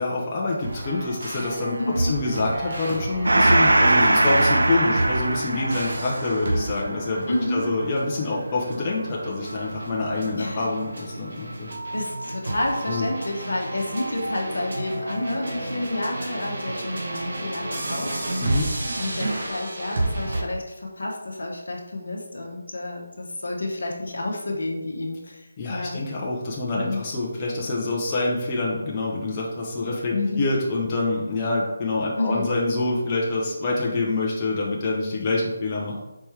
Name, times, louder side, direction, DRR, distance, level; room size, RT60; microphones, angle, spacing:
voice 1, 0.0-11.7 12.9-13.0 18.4-18.7 25.6-36.0, left 2 dB, 25° left, -4 dB, 0.8 m, -26 dB
sound 1, 0.6-20.4, right 2 dB, 55° right, 1.0 m, -31 dB
voice 2, 1.8-2.1 7.3-7.7 10.4-10.7 11.9-18.5 19.0-26.0 26.7-27.0 30.1-30.5 32.2-32.5, left 2 dB, 65° left, 0 dB, 1.0 m, -29 dB
Gong, 3.2-10.2, right 2 dB, 75° right, 0.4 m, -22 dB
4.5 x 3.3 x 3.2 m, 1.0 s
figure-of-eight pair, 155°, 0 cm